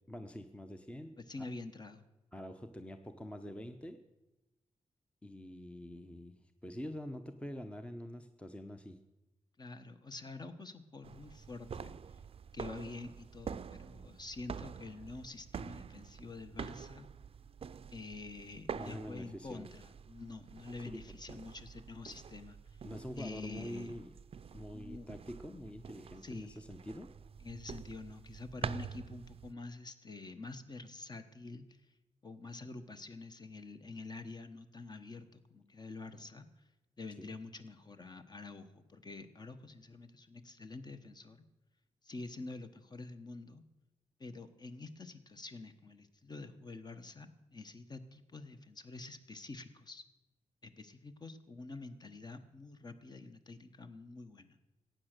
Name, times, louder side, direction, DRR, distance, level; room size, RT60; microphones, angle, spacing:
voice 1, 0.1-1.2 2.3-4.0 5.2-9.0 18.7-19.7 20.8-21.0 21.3-21.4 22.8-24.1 24.5-27.1 37.2-37.3, left 1 dB, 10° left, 8 dB, 0.7 m, -45 dB
voice 2, 1.3-2.0 9.6-12.0 12.5-17.1 17.9-22.6 23.2-23.9 24.7-25.1 26.2-26.6 27.4-31.6 32.2-36.5 37.0-41.4 42.0-43.6 44.2-50.0 50.6-54.6, left 3 dB, 35° left, 9 dB, 1.1 m, -47 dB
sound 1, 11.0-29.5, right 7 dB, 50° right, 0.5 m, -47 dB
15.0 x 9.0 x 6.6 m, 0.99 s
wide cardioid pair, 110°, 12 cm